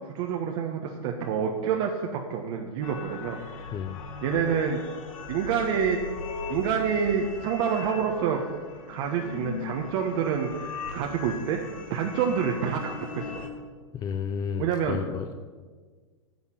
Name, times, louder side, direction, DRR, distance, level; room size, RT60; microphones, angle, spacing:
voice 1, 0.0-3.4 4.2-4.8 5.3-6.0 6.5-8.4 8.9-11.6 11.9-13.4 14.6-15.0, right 7 dB, 55° right, 1 dB, 1.4 m, -27 dB
sound 1, 2.8-13.5, left 4 dB, 75° left, 2.1 m, -39 dB
voice 2, 13.9-15.3, left 7 dB, 20° left, 8 dB, 0.6 m, -32 dB
10.5 x 7.2 x 8.7 m, 1.5 s
hypercardioid pair, 130°, 18 cm